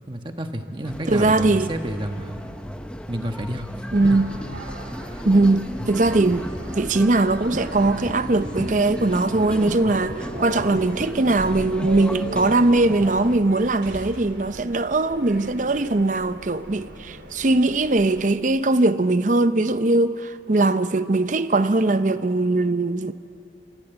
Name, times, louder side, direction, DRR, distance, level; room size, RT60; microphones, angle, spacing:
voice 1, 0.1-2.4 3.1-3.7 4.0-4.2, right 1 dB, 25° right, 1.3 m, -30 dB
sound 1, 0.8-13.4, equal, 5° left, 0.8 m, -34 dB
voice 2, 1.1-1.7 3.9-4.3 5.2-23.1, right 2 dB, 45° right, 0.7 m, -20 dB
sound 2, 3.9-18.2, right 1 dB, 80° right, 3.4 m, -38 dB
26.5 x 23.0 x 8.1 m
head